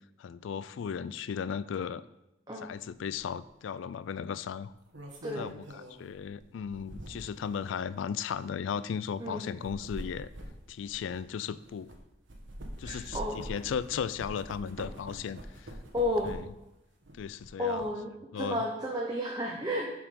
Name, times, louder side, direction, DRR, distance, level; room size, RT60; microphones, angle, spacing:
voice 1, 0.2-2.0 2.6-4.7 5.4-10.3 10.7-11.9 12.8-15.4 16.2-16.5 17.2-17.8 18.3-18.6, left 7 dB, 70° left, 16 dB, 0.3 m, -36 dB
sound 1, 3.1-3.3 4.6-7.5 8.1-8.3 9.4-12.0 12.3-16.6 17.0-17.8, right 1 dB, 70° right, 1.1 m, -44 dB
voice 2, 9.2-9.5 12.8-13.4 15.9-16.3 17.6-19.9, left 1 dB, 20° right, -1 dB, 0.7 m, -32 dB
7.1 x 4.8 x 5.2 m, 0.91 s
head